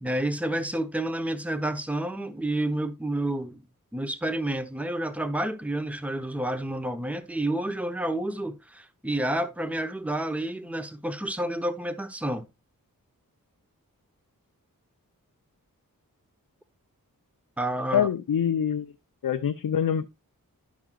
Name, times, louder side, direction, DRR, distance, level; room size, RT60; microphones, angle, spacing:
voice 1, 0.0-3.6 3.9-12.5 17.6-18.1, right 1 dB, 5° right, 0.9 m, -29 dB
voice 2, 17.9-18.9 19.2-20.1, left 8 dB, 80° left, 0.6 m, -25 dB
11.5 x 6.1 x 2.4 m
wide cardioid pair, 55°, 35 cm